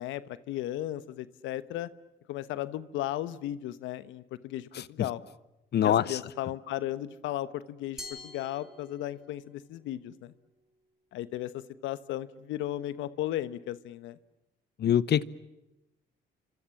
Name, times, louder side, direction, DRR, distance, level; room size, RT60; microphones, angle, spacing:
voice 1, 0.0-1.9 2.3-5.2 5.8-10.3 11.1-14.2, left 13 dB, 90° left, 1.1 m, -35 dB
voice 2, 5.7-6.2 14.8-15.2, left 10 dB, 60° left, 1.1 m, -24 dB
Glass, 8.0-9.4, left 2 dB, ahead, 5.1 m, -46 dB
29.5 x 25.5 x 7.2 m
cardioid pair, 75°, 19 cm